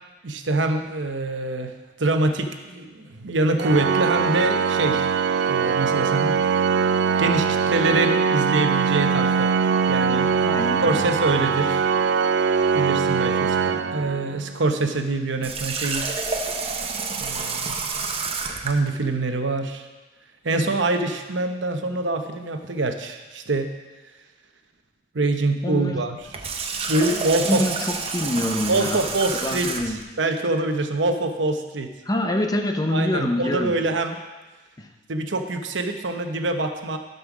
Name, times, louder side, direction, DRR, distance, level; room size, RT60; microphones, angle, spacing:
voice 1, 0.2-5.2 5.5-6.4 7.2-9.5 9.9-10.3 10.8-11.9 12.7-16.1 16.6-16.7 17.2-17.7 18.6-19.9 20.4-23.7 25.1-26.4 26.9-27.6 28.7-31.9 32.9-34.2 35.1-37.0, right 2 dB, 85° right, 6 dB, 0.9 m, -25 dB
Organ, 3.6-14.6, right 6 dB, 70° right, 0.4 m, -22 dB
voice 2, 10.4-11.0 25.6-26.0 27.4-29.0 29.4-30.0 32.1-33.7 34.8-34.9, left 1 dB, 20° left, 4 dB, 0.8 m, -25 dB
Water tap faucet, 15.4-18.8 26.2-30.0, right 4 dB, 30° right, 0.7 m, -29 dB
11.5 x 5.4 x 6.0 m, 1.2 s
head